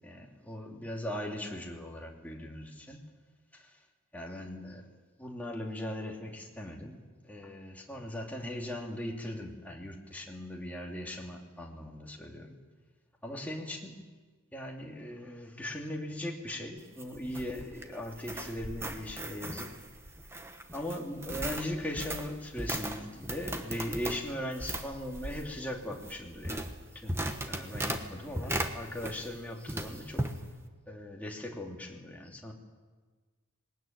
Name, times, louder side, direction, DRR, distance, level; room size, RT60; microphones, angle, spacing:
voice 1, 0.0-3.0 3.5-3.7 4.1-4.8 5.2-7.0 7.2-12.5 13.2-14.0 14.5-19.7 20.7-27.2 27.4-30.3 30.9-32.5, left 1 dB, 5° left, -1 dB, 2.6 m, -39 dB
sound 1, 16.8-29.4 29.7-30.4, right 1 dB, 10° right, 1.3 m, -38 dB
20.5 x 19.5 x 9.2 m, 1.4 s
head